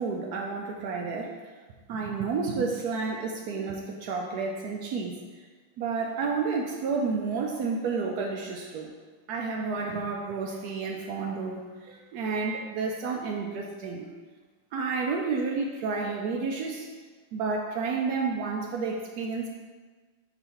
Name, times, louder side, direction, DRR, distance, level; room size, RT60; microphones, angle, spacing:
voice 1, 0.0-1.3 1.9-5.2 5.8-8.9 9.3-14.1 14.7-16.9 17.3-19.5, right 4 dB, 90° right, 0 dB, 0.8 m, -30 dB
5.0 x 3.7 x 5.6 m, 1.4 s
omnidirectional pair, 2.3 m